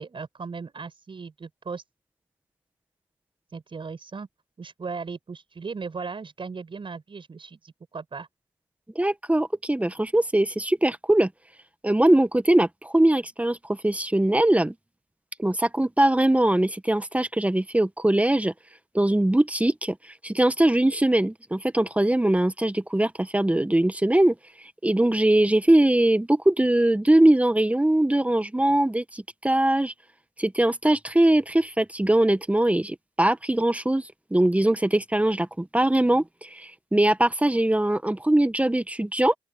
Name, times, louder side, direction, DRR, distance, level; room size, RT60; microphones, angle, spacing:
voice 1, 0.0-1.8 3.5-4.3 4.6-8.3, right 4 dB, 40° right, 7.0 m, -37 dB
voice 2, 9.0-11.3 11.8-14.7 15.4-18.5 18.9-20.0 20.2-24.4 24.8-29.9 30.4-39.4, right 1 dB, 10° right, 1.7 m, -21 dB
open air
hypercardioid pair, 45°, 14 cm